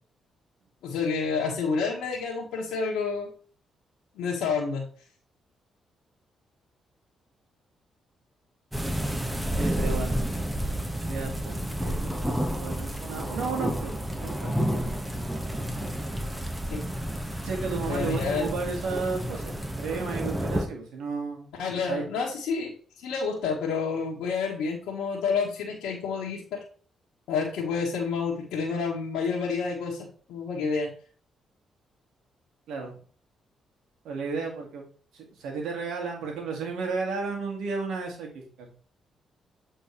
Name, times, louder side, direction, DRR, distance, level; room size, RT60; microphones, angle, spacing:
voice 1, 0.8-3.3 4.2-4.8 16.7-16.8 17.9-18.5 21.6-26.6 27.3-30.9, left 5 dB, 85° left, -4 dB, 1.4 m, -29 dB
sound 1, 8.7-20.7, equal, 10° right, 1.4 m, -30 dB
voice 2, 9.6-10.3 11.0-14.7 17.4-19.5 19.8-21.5 21.9-22.0 32.7-32.9 34.0-34.8 35.1-38.3 38.6-38.7, right 4 dB, 80° right, 2 dB, 2.0 m, -33 dB
8.0 x 4.3 x 3.2 m, 0.43 s
supercardioid pair, 60°, 0 cm